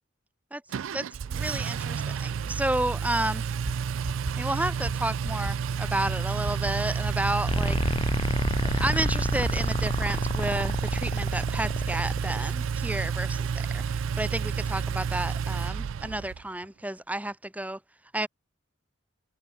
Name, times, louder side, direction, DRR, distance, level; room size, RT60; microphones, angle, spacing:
Engine, 0.7-16.4, right 6 dB, 70° right, 0.4 m, -30 dB
voice 1, 0.9-3.5 4.4-7.8 8.6-13.5 13.7-17.8 18.1-18.3, right 1 dB, 5° right, 1.3 m, -31 dB
sound 1, 3.6-3.7 4.0-4.3 4.6-4.9 5.2-5.5 5.8-6.1 6.4-6.7 7.1-7.3 7.6-7.9 8.2-8.5 8.8-9.1 9.4-9.7, equal, 40° right, 7.3 m, -34 dB
sound 2, 7.5-12.4, left 2 dB, 25° left, 0.6 m, -30 dB
head